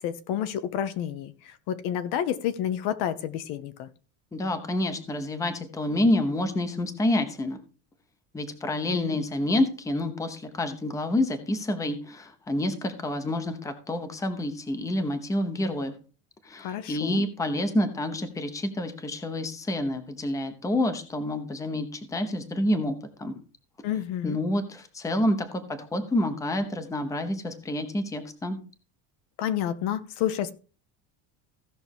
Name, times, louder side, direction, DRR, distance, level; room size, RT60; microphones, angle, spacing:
voice 1, 0.0-3.9 8.9-9.2 16.6-17.2 23.8-24.4 29.4-30.5, left 10 dB, 65° left, 12 dB, 1.1 m, -30 dB
voice 2, 4.3-7.6 8.3-15.9 16.4-23.4 24.2-28.6, left 1 dB, 5° left, 9 dB, 0.8 m, -28 dB
16.0 x 6.0 x 3.5 m, 0.36 s
cardioid pair, 165°, 43 cm